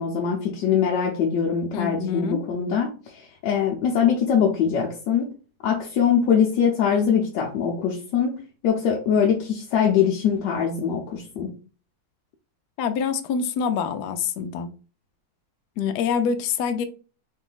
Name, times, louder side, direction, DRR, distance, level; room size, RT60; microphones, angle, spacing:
voice 1, 0.0-5.3 5.6-8.4 8.6-11.5, left 7 dB, 65° left, 1.2 m, -22 dB
voice 2, 1.7-2.4 12.8-14.7 15.8-16.8, left 6 dB, 85° left, 0.8 m, -26 dB
4.0 x 2.7 x 3.8 m
omnidirectional pair, 2.4 m